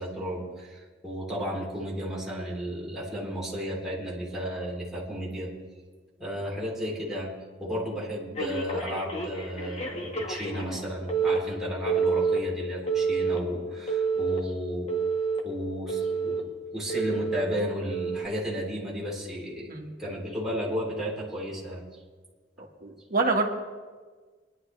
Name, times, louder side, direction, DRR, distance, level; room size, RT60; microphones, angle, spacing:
voice 1, 0.0-5.5 6.2-7.3 7.6-14.9 15.4-16.4 16.7-21.8, equal, ahead, -6 dB, 3.5 m, -33 dB
Telephone, 8.4-10.8 11.1-11.4 11.9-12.4 12.9-13.4 13.9-14.4 14.9-15.4 15.9-16.4 16.9-17.4 17.9-18.2, right 5 dB, 35° left, 1.7 m, -28 dB
voice 2, 22.8-23.5, right 3 dB, 50° right, 1 dB, 1.7 m, -26 dB
22.5 x 11.0 x 3.3 m, 1.4 s
head